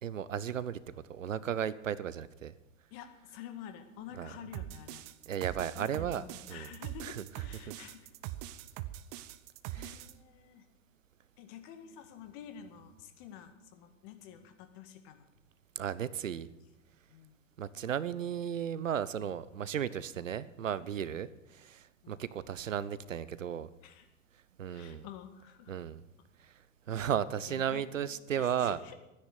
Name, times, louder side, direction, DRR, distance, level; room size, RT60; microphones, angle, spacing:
voice 1, 0.0-2.5 4.2-4.3 5.3-6.7 7.0-7.2 9.7-10.0 15.8-16.5 17.6-23.7 24.6-25.1 25.7-26.0 26.4-26.5 26.9-28.8, right 9 dB, 80° right, 17 dB, 0.8 m, -35 dB
voice 2, 2.9-5.0 5.7-8.1 9.7-10.7 11.4-15.3 17.1-17.4 21.1-21.3 22.0-22.3 23.8-24.1 24.7-25.7 26.9-27.1 27.5-27.8 28.3-29.0, left 9 dB, 50° left, 7 dB, 2.0 m, -49 dB
sound 1, 4.5-10.1, right 14 dB, 45° right, 0.8 m, -42 dB
13.0 x 10.0 x 8.4 m, 0.96 s
figure-of-eight pair, 90°, 38 cm